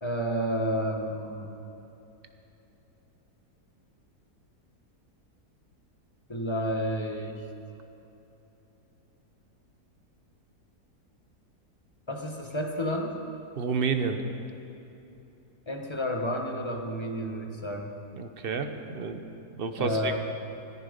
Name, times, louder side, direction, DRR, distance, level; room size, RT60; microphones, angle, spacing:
voice 1, 0.0-1.5 6.3-7.5 12.1-13.2 15.7-17.9 19.8-20.2, equal, 20° left, 2 dB, 1.1 m, -30 dB
voice 2, 13.6-14.2 18.2-19.2 19.6-20.2, right 5 dB, 45° right, 7 dB, 0.9 m, -30 dB
14.5 x 14.0 x 5.2 m, 2.9 s
omnidirectional pair, 1.7 m